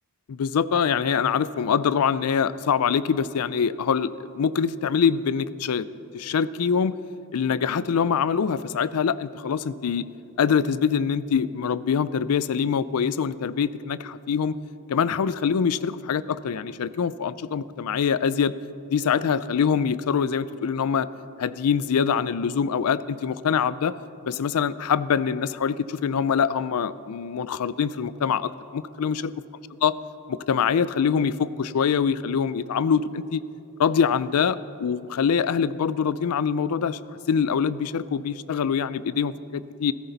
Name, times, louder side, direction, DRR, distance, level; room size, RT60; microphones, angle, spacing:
voice 1, 0.3-4.1 4.3-5.9 6.1-7.0 7.3-10.0 10.4-14.5 14.9-18.5 18.9-21.1 21.4-23.9 24.3-29.3 29.8-29.9 30.3-33.4 33.8-37.0 37.3-39.9, left 7 dB, 80° left, 17 dB, 0.4 m, -24 dB
15.5 x 14.0 x 4.0 m, 2.8 s
head